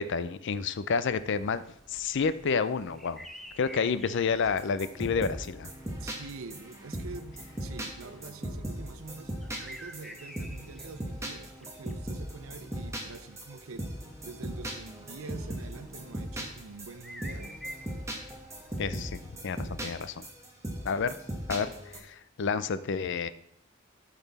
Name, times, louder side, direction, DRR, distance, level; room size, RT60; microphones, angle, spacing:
voice 1, 0.0-1.6 1.9-3.2 3.6-5.7 18.8-20.2 20.8-21.2 21.5-23.3, left 5 dB, 60° left, 14 dB, 0.5 m, -30 dB
sound 1, 0.9-18.9, equal, ahead, 0.6 m, -51 dB
sound 2, 4.4-22.0, right 1 dB, 15° right, 1.2 m, -39 dB
voice 2, 6.0-9.3 9.6-13.9 14.2-17.6, right 4 dB, 80° right, 10 dB, 0.6 m, -45 dB
12.0 x 4.1 x 4.1 m, 0.76 s
head